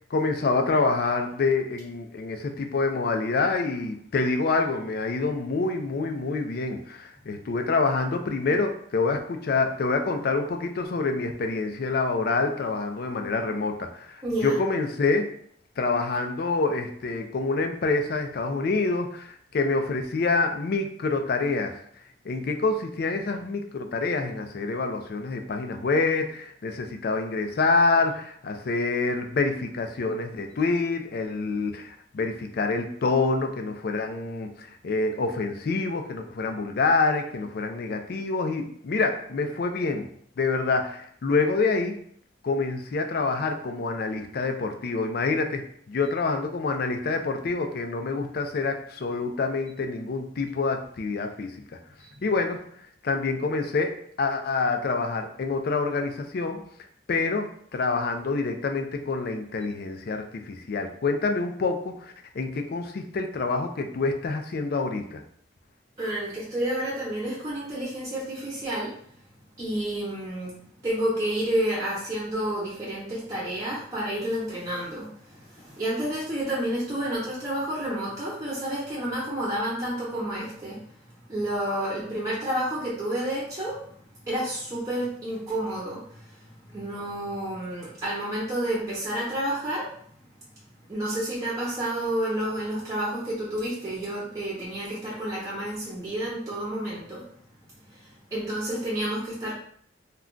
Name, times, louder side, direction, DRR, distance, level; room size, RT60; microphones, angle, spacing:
voice 1, 0.1-15.3 15.8-21.7 22.2-40.1 40.4-41.9 42.4-51.6 52.2-52.6 53.0-53.9 54.2-56.6 57.1-65.2, left 3 dB, 55° left, 5 dB, 0.4 m, -27 dB
voice 2, 14.2-14.6 52.0-52.1 66.0-68.9 69.6-70.5 70.8-80.9 81.3-83.8 84.2-89.9 90.9-97.2 97.9-99.6, right 1 dB, 20° right, -7 dB, 0.6 m, -30 dB
2.3 x 2.2 x 3.7 m, 0.63 s
head